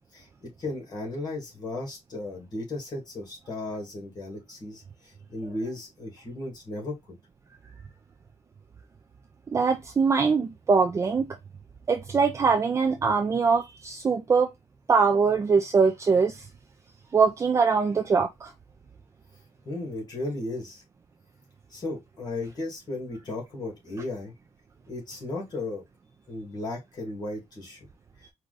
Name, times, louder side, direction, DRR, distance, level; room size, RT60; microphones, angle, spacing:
voice 1, 0.1-7.0 19.6-20.8 21.7-24.3 24.9-25.8 26.3-27.9 28.2-28.3, left 2 dB, 35° left, 2.4 m, -35 dB
voice 2, 9.5-11.2 11.9-14.5 14.9-16.4 17.1-18.5, right 5 dB, 25° right, 0.5 m, -22 dB
4.6 x 2.7 x 3.9 m
wide cardioid pair, 170°, 12 cm